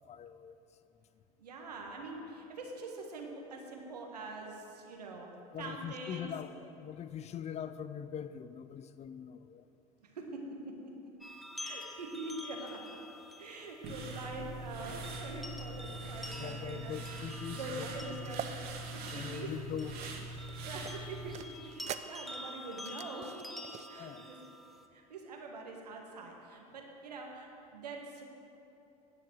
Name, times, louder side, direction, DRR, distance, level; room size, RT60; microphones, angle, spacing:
voice 1, 0.1-0.6 5.5-9.7 16.3-18.2 19.1-20.0 24.0-24.3, left 8 dB, 35° left, 13 dB, 0.5 m, -42 dB
voice 2, 1.4-5.3 5.6-6.3 10.0-10.9 11.6-13.0 13.4-18.5 18.9-19.5 20.6-23.3 23.5-24.4 24.9-28.2, right 2 dB, 90° right, 1 dB, 1.6 m, -44 dB
sound 1, 11.2-24.9, left 1 dB, ahead, 1.0 m, -48 dB
sound 2, 13.8-21.3, right 2 dB, 55° right, 1.9 m, -43 dB
sound 3, 18.2-18.5 19.0-20.5 20.9-23.9, right 10 dB, 35° right, 0.5 m, -45 dB
10.5 x 6.6 x 7.5 m, 2.9 s
hypercardioid pair, 80°, 20 cm